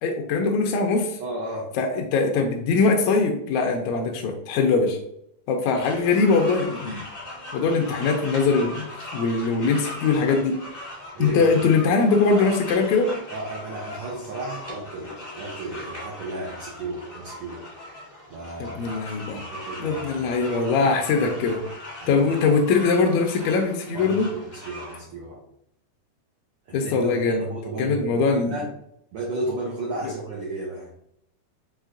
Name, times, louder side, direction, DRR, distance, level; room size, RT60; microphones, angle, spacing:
voice 1, 0.0-1.2 1.8-5.0 5.5-7.0 7.5-10.6 11.2-13.1 18.6-19.4 19.8-21.6 22.1-24.3 26.7-27.4 27.8-28.6 30.0-30.1, left 4 dB, 80° left, 2 dB, 1.8 m, -22 dB
voice 2, 1.2-1.7 7.2-7.6 11.1-11.7 13.3-17.6 18.3-20.4 20.7-20.9 22.0-22.3 23.9-25.4 26.7-28.7 29.1-30.9, right 2 dB, 75° right, -3 dB, 1.3 m, -34 dB
sound 1, 5.7-25.0, left 1 dB, 20° left, 0.8 m, -39 dB
6.4 x 3.2 x 2.5 m, 0.75 s
omnidirectional pair, 3.7 m